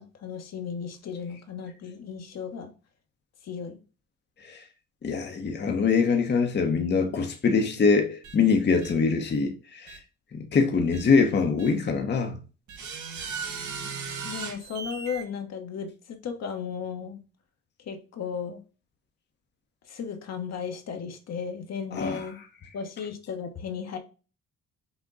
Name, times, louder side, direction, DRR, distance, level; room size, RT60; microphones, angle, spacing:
voice 1, 0.0-2.7 3.4-3.8 14.2-17.2 17.9-18.6 19.9-22.4 22.7-24.0, left 6 dB, 60° left, 1.0 m, -35 dB
voice 2, 5.0-10.0 10.5-12.4 21.9-22.2, left 5 dB, 35° left, 0.8 m, -23 dB
sound 1, 8.2-8.4 8.8-8.9 9.9-10.0 10.9-11.0 11.6-11.7 12.7-15.2, right 5 dB, 70° right, 1.3 m, -36 dB
6.1 x 2.2 x 3.8 m
cardioid pair, 90°, 30 cm